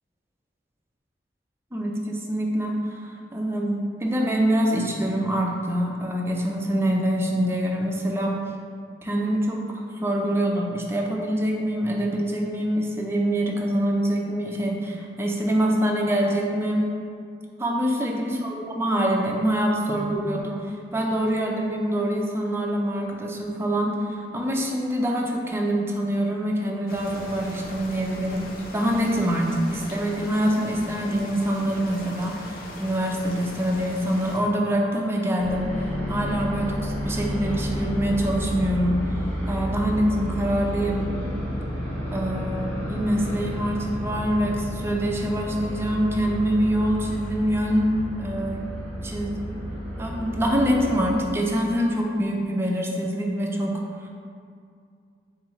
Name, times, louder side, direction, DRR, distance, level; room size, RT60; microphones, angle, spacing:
voice 1, 1.7-8.4 9.0-16.9 17.6-35.7 36.1-39.2 39.5-41.1 42.1-47.9 48.2-48.6 49.0-49.4 50.0-53.7 54.0-54.1, equal, 15° right, -1 dB, 0.4 m, -25 dB
sound 1, 26.9-34.4, left 1 dB, 55° left, 0.5 m, -39 dB
sound 2, 35.4-51.1, equal, 10° left, 0.7 m, -31 dB
3.8 x 3.1 x 3.5 m, 2.3 s
head